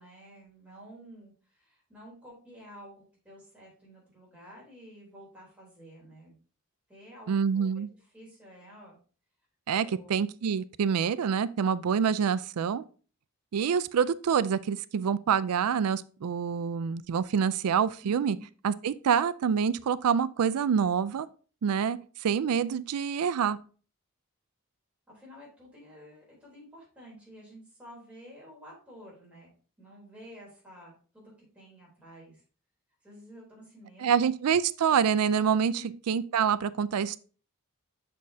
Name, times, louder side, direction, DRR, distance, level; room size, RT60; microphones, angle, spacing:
voice 1, 0.0-6.4 6.9-7.7 8.1-9.0 9.8-10.2 18.0-18.4 25.1-29.5 29.8-32.4 33.0-34.2 35.7-35.9, equal, 5° right, 3.3 m, -51 dB
voice 2, 7.3-7.9 9.7-12.8 13.5-18.4 18.6-21.3 21.6-23.6 34.0-35.7 36.1-37.2, right 7 dB, 80° right, 0.4 m, -26 dB
6.6 x 6.2 x 2.7 m
head